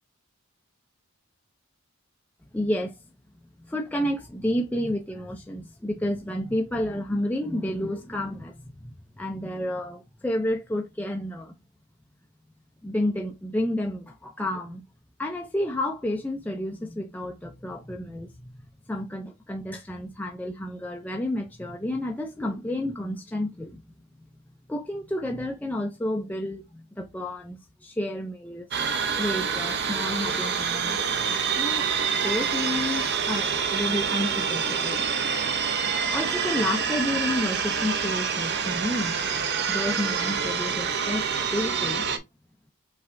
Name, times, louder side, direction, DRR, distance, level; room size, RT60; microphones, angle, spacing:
voice 1, 2.5-3.0 3.6-11.5 12.8-14.8 15.2-18.5 18.9-23.8 24.7-28.7 29.1-31.0 31.6-31.9 32.2-35.0 36.1-39.2 39.7-42.1, left 1 dB, 5° left, 0.4 m, -30 dB
sound 1, 28.7-42.2, right 6 dB, 50° right, 0.6 m, -27 dB
5.6 x 3.2 x 2.5 m
head